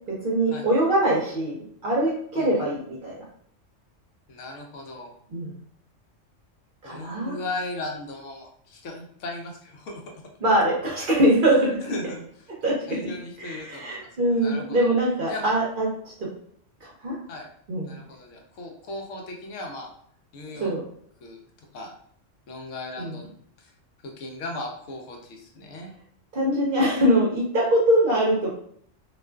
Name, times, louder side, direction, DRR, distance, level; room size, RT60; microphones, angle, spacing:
voice 1, 0.1-3.2 5.3-5.5 6.8-7.4 10.4-11.9 12.6-12.7 13.0-13.1 13.4-16.1 16.8-17.2 17.7-18.0 20.6-20.8 23.0-23.1 26.3-28.5, right 1 dB, 55° right, -4 dB, 0.7 m, -23 dB
voice 2, 4.3-5.1 6.8-10.0 11.4-11.6 11.9-12.5 12.9-14.9 15.3-15.5 17.3-17.5 17.8-19.9 20.3-20.7 21.2-21.4 21.7-21.9 22.5-23.2 23.6-23.7 24.0-25.9, left 2 dB, 80° left, 2 dB, 0.9 m, -37 dB
2.4 x 2.3 x 2.2 m, 0.63 s
omnidirectional pair, 1.3 m